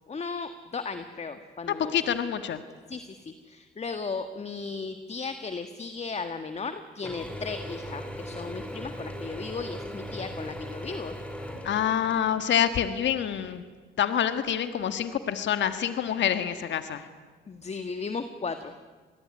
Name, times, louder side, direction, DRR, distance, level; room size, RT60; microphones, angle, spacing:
voice 1, 0.1-1.9 2.9-11.2 17.5-18.8, left 4 dB, 35° left, 9 dB, 1.6 m, -36 dB
voice 2, 1.7-2.6 11.6-13.6 14.0-17.0, left 9 dB, 65° left, 10 dB, 1.7 m, -27 dB
Mechanisms / Drill, 7.0-12.5, equal, 5° left, 5.2 m, -38 dB
26.5 x 20.5 x 9.7 m, 1.4 s
cardioid pair, 90°, 20 cm